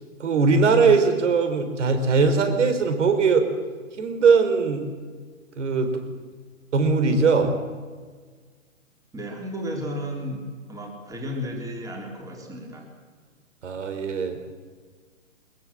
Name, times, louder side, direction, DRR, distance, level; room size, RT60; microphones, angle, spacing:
voice 1, 0.2-3.5 4.0-4.8 5.6-5.9 6.7-7.5 13.6-14.4, right 4 dB, 60° right, 7 dB, 4.2 m, -20 dB
voice 2, 9.1-12.9, equal, 10° right, 2 dB, 3.6 m, -33 dB
22.0 x 22.0 x 7.5 m, 1.5 s
hypercardioid pair, 140°, 40 cm